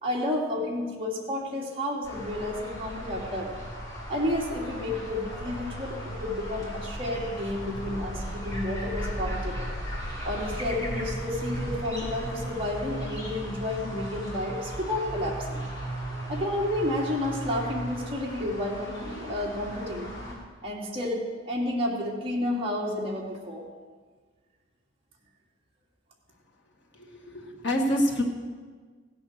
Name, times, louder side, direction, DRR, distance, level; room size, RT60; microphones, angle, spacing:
voice 1, 0.0-3.5 4.1-9.7 10.2-15.6 16.3-20.1 20.6-23.7, left 1 dB, 30° right, -3 dB, 2.5 m, -31 dB
sound 1, 2.0-20.3, equal, 20° left, 3.6 m, -36 dB
voice 2, 27.1-28.2, equal, 70° left, 1 dB, 2.0 m, -26 dB
15.5 x 8.5 x 6.5 m, 1.5 s
head